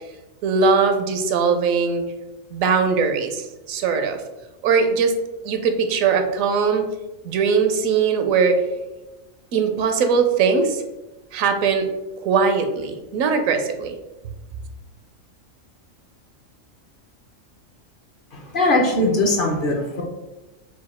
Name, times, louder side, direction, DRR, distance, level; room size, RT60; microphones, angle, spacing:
voice 1, 0.4-2.0 2.5-4.2 4.6-5.1 5.4-6.9 7.2-8.6 9.5-10.8 11.3-11.9 12.2-13.9, right 5 dB, 85° right, 7 dB, 1.0 m, -20 dB
voice 2, 18.5-20.0, left 2 dB, 50° left, 1 dB, 0.7 m, -20 dB
5.0 x 2.2 x 4.2 m, 1.0 s
omnidirectional pair, 1.4 m